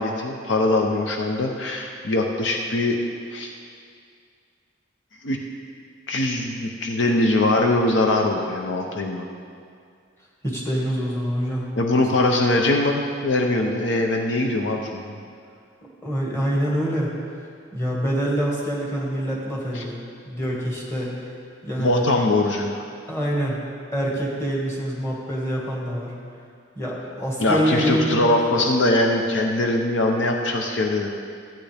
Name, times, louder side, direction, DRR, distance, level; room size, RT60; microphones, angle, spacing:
voice 1, 0.0-3.0 3.3-3.5 5.2-5.4 6.1-9.3 11.8-15.2 19.7-19.8 21.8-22.9 27.4-31.3, left 2 dB, 70° left, 2 dB, 0.7 m, -22 dB
voice 2, 10.4-11.7 16.0-17.1 17.7-20.0 20.3-21.2 21.6-22.0 23.1-23.6 23.9-26.1 26.8-28.2, equal, 15° left, -5 dB, 1.9 m, -25 dB
14.0 x 8.9 x 3.5 m, 2.3 s
head